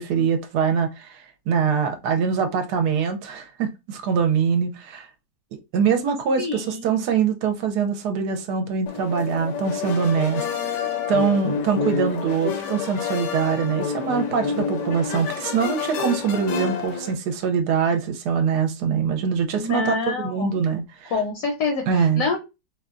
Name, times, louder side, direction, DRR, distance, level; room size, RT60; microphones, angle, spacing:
voice 1, 0.0-5.1 5.7-21.1 21.9-22.2, right 6 dB, 75° right, 1.1 m, -23 dB
voice 2, 6.4-7.0 19.6-20.5 21.1-22.4, left 4 dB, 65° left, 0.9 m, -27 dB
sound 1, 8.9-17.1, left 6 dB, 80° left, 1.3 m, -28 dB
4.0 x 2.2 x 2.4 m
omnidirectional pair, 1.8 m